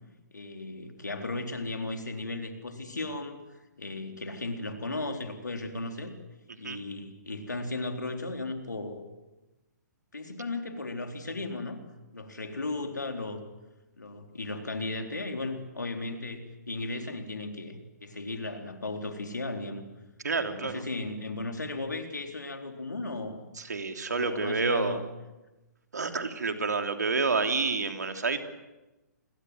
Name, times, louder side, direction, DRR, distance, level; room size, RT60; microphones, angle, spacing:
voice 1, 0.3-3.4 3.8-6.1 6.6-9.0 10.1-11.8 12.1-13.4 14.0-19.8 20.4-23.4 24.1-25.1, left 2 dB, 75° left, 5 dB, 4.0 m, -36 dB
voice 2, 20.2-20.8 23.6-25.0 25.9-28.4, right 4 dB, 70° right, 6 dB, 3.2 m, -29 dB
29.0 x 22.0 x 7.9 m, 1.1 s
figure-of-eight pair, 125°, 10 cm